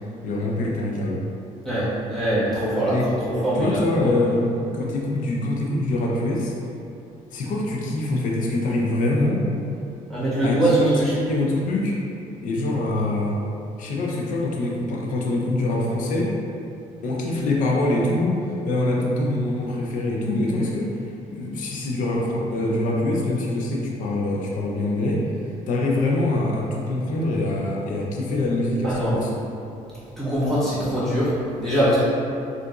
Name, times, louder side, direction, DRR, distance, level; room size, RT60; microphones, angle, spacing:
voice 1, 0.2-1.3 2.9-3.2 3.6-6.5 7.3-9.5 10.4-12.0 12.4-13.4 13.8-16.4 17.0-21.0 21.3-25.3 25.7-29.3, left 2 dB, 65° left, -2 dB, 0.5 m, -24 dB
voice 2, 1.6-4.1 10.1-11.1 28.8-29.2 30.2-31.3 31.6-32.0, right 1 dB, ahead, -12 dB, 1.2 m, -22 dB
3.8 x 2.5 x 2.3 m, 2.6 s
cardioid pair, 125°, 14 cm